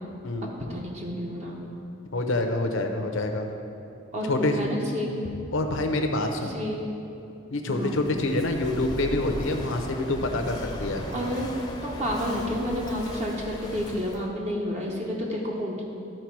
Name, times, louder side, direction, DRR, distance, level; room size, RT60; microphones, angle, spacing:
voice 1, 0.7-1.6 4.1-5.3 6.4-6.8 7.7-8.0 11.1-11.5 11.8-15.8, equal, 35° right, -2 dB, 0.9 m, -30 dB
voice 2, 2.1-3.5 4.3-4.6 5.5-6.5 7.5-11.1, left 2 dB, 80° left, 4 dB, 0.7 m, -26 dB
Walk footsteps / Wind / Waves surf, 7.7-14.3, left 1 dB, 20° left, 0.6 m, -37 dB
12.0 x 4.6 x 4.6 m, 2.9 s
head